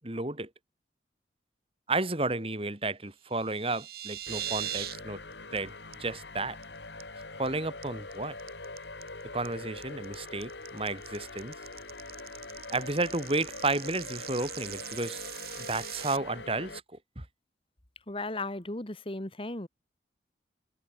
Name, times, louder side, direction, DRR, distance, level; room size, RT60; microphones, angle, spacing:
voice 1, 0.0-0.5 1.9-5.2 5.5-5.7 6.0-6.6 7.4-8.4 9.3-11.5 12.7-15.2 15.7-16.8 17.2-17.3, right 2 dB, 30° right, 3.3 m, -32 dB
sound 1, 3.3-5.0 5.3-5.6 5.9-6.0 6.4-6.6 7.0-7.5 7.8-16.2, right 12 dB, 60° right, 4.8 m, -40 dB
sound 2, 4.3-16.8, left 3 dB, 85° left, 7.6 m, -44 dB
voice 2, 18.1-19.7, left 2 dB, 30° left, 1.7 m, -36 dB
head